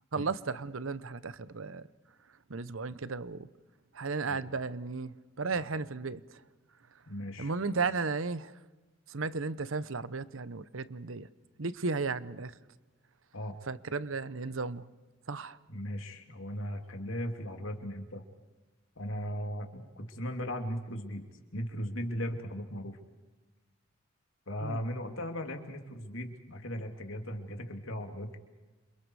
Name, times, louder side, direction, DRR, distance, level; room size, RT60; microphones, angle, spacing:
voice 1, 0.1-1.9 2.5-3.5 3.9-6.2 7.4-8.5 9.1-11.3 11.6-12.5 13.7-14.8 15.3-15.6 24.6-24.8, right 4 dB, 80° right, 0.9 m, -34 dB
voice 2, 7.1-7.8 13.3-13.6 15.7-18.2 19.0-21.3 21.5-23.0 24.5-28.4, equal, 80° left, 2.9 m, -37 dB
29.5 x 27.0 x 4.9 m
head